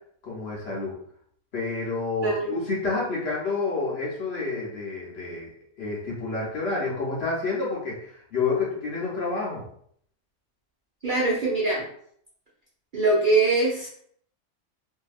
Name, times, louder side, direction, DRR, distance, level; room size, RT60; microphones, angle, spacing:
voice 1, 0.2-0.9 1.5-5.5 5.8-9.7, left 3 dB, 55° left, -5 dB, 0.8 m, -29 dB
voice 2, 2.2-2.5 11.0-11.8 12.9-13.9, right 2 dB, 50° right, -6 dB, 0.6 m, -22 dB
2.7 x 2.6 x 2.4 m, 0.64 s
omnidirectional pair, 1.5 m